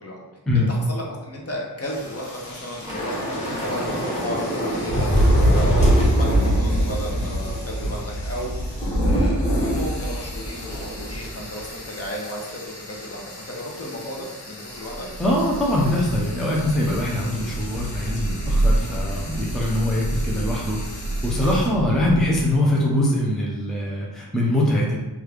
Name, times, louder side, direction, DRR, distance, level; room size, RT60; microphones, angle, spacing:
voice 1, 0.5-5.1 5.5-8.5 9.0-12.6 12.9-15.1, equal, 35° left, -2 dB, 0.7 m, -33 dB
Frying (food), 1.8-21.7, left 2 dB, 85° left, 0.9 m, -41 dB
Thunder / Rain, 2.8-11.4 11.7-11.9 12.2-12.5, equal, 20° left, 1.2 m, -22 dB
Thunder / Rain 2, 14.8-22.8, right 1 dB, 70° right, 0.6 m, -28 dB
voice 2, 15.2-25.0, left 1 dB, ahead, -4 dB, 0.4 m, -23 dB
3.2 x 2.4 x 3.2 m, 1.2 s
wide cardioid pair, 115°, 41 cm